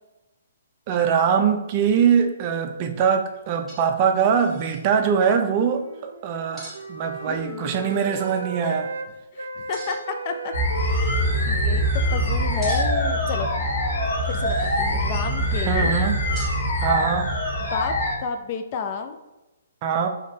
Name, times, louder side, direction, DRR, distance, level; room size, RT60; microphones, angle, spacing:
voice 1, 0.9-8.9 15.6-16.2 16.8-17.3 19.8-20.1, right 7 dB, 35° right, 6 dB, 0.5 m, -22 dB
sound 1, 3.7-4.0 4.3-4.8 6.6-6.8 7.8-8.4 9.7-10.2 10.7-11.2 12.6-13.1 14.1-14.9 16.3-16.6, right 1 dB, 5° right, 1.2 m, -42 dB
Wind instrument woodwind instrument, 5.4-9.1 9.4-14.7, right 3 dB, 85° right, 0.6 m, -38 dB
voice 2, 7.3-7.8 8.6-8.7 9.3-13.5 14.3-15.9 17.7-19.2, left 6 dB, 40° left, 6 dB, 0.4 m, -32 dB
sound 2, 10.5-18.1, equal, 85° left, 1.5 m, -23 dB
4.9 x 3.1 x 2.8 m, 1.0 s
hypercardioid pair, 145°, 0 cm